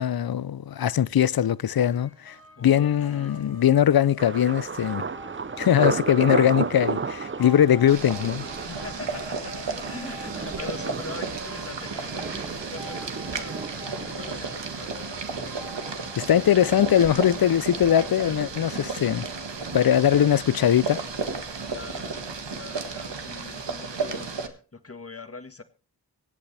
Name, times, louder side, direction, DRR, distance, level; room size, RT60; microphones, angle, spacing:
voice 1, 0.0-2.4 2.6-5.0 5.6-8.5 16.1-19.3 19.7-21.0, left 10 dB, 60° left, 0.5 m, -21 dB
sound 1, 1.7-18.2, left 1 dB, 90° left, 4.8 m, -46 dB
voice 2, 2.6-3.5 8.6-13.5 13.8-14.9 21.6-22.2 22.5-25.6, left 3 dB, 35° left, 1.6 m, -42 dB
Thunder, 4.2-19.9 20.2-20.8 21.2-21.5, right 5 dB, 30° right, 0.5 m, -35 dB
Boiling, 7.9-24.5, right 4 dB, 75° right, 1.6 m, -34 dB
25.0 x 8.5 x 3.3 m
wide cardioid pair, 45°, 43 cm